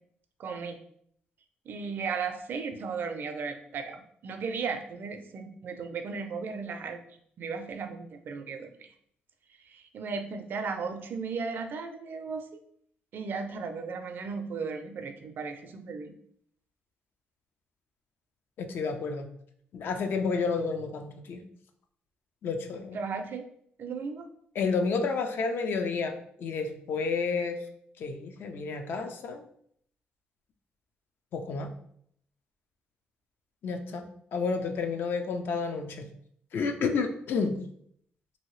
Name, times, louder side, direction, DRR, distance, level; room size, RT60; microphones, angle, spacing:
voice 1, 0.4-0.8 1.7-7.0 7.4-8.7 9.6-12.6 13.1-16.1 22.9-23.4 23.8-24.3, right 5 dB, 60° right, 6 dB, 0.4 m, -35 dB
voice 2, 18.6-19.3 19.7-21.4 22.4-23.1 24.6-27.6 28.0-29.4 31.3-31.7 33.6-34.1 34.3-36.0 36.5-37.5, left 4 dB, 65° left, 6 dB, 0.4 m, -30 dB
2.7 x 2.7 x 3.1 m, 0.66 s
cardioid pair, 85°, 4 cm